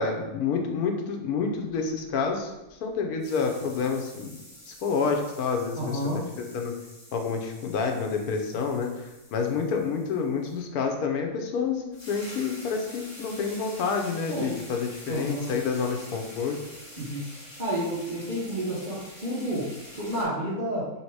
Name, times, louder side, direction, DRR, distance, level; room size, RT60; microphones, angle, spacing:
voice 1, 0.0-2.5 2.8-4.4 4.7-6.0 6.5-6.7 7.1-16.6, left 5 dB, 85° left, 3 dB, 1.2 m, -28 dB
sound 1, 1.7-2.9 3.2-10.6 11.6-11.7 11.9-20.2, equal, 20° left, 1.1 m, -47 dB
voice 2, 5.8-6.3 14.3-14.6 15.1-15.6 17.0-17.3 17.6-20.9, right 1 dB, 35° right, -8 dB, 1.0 m, -30 dB
3.5 x 2.8 x 4.6 m, 0.98 s
omnidirectional pair, 1.6 m